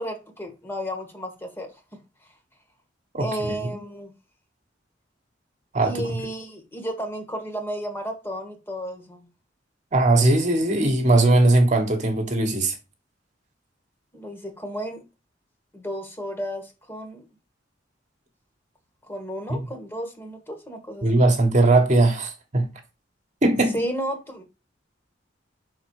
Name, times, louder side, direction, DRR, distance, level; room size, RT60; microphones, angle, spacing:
voice 1, 0.0-1.7 3.2-4.1 5.8-9.3 14.1-15.0 15.7-17.2 19.0-21.2 23.7-24.4, equal, 15° left, 1.3 m, -33 dB
voice 2, 9.9-12.7 19.5-19.6 21.0-22.7 23.4-23.8, right 2 dB, 40° right, 1.3 m, -19 dB
5.8 x 4.1 x 4.6 m
head